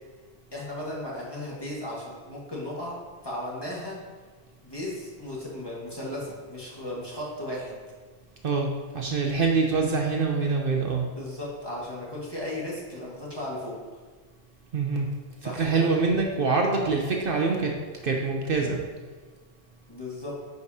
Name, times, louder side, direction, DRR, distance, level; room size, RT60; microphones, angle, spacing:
voice 1, 0.5-3.0 3.2-4.0 4.6-7.8 11.1-13.8 15.4-15.9 19.9-20.3, left 1 dB, 20° left, -5 dB, 1.6 m, -35 dB
voice 2, 8.9-11.1 14.7-15.1 15.4-17.7 18.0-18.8, right 4 dB, 60° right, 1 dB, 0.8 m, -25 dB
9.8 x 5.3 x 2.8 m, 1.4 s
omnidirectional pair, 1.1 m